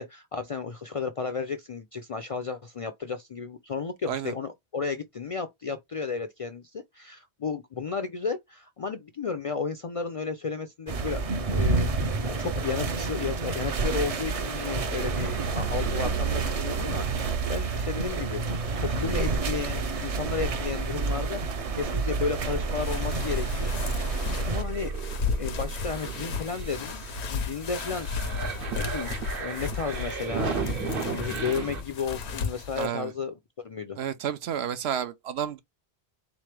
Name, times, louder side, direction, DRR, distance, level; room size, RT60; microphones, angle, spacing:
voice 1, 0.0-24.1 24.4-24.9 25.4-28.1 28.7-29.1 29.4-33.3 33.6-34.0, left 5 dB, 55° left, 0.4 m, -33 dB
sound 1, 10.9-24.6, right 3 dB, 45° right, 0.5 m, -29 dB
sound 2, 13.5-31.8, right 5 dB, 60° right, 1.0 m, -35 dB
sound 3, 22.8-32.9, left 5 dB, 90° left, 1.0 m, -34 dB
voice 2, 32.8-33.1 34.0-35.6, right 9 dB, 85° right, 0.9 m, -31 dB
3.6 x 3.1 x 3.2 m
omnidirectional pair, 1.1 m